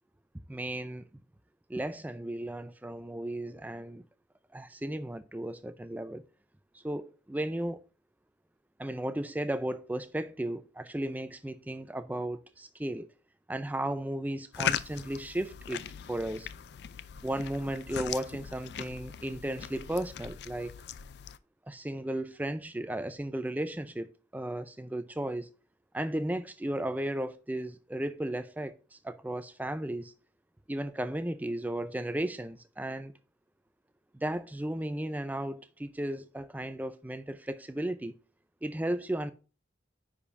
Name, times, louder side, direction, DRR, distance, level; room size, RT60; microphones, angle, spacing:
voice 1, 0.5-1.1 1.7-4.0 4.5-6.2 6.7-7.8 8.8-13.1 13.5-16.5 17.2-20.7 21.7-25.5 25.9-30.1 30.7-33.1 34.1-38.1 38.6-39.3, right 1 dB, 10° right, 0.4 m, -35 dB
sound 1, 14.5-21.4, left 8 dB, 60° left, 0.3 m, -39 dB
9.9 x 5.1 x 2.5 m
head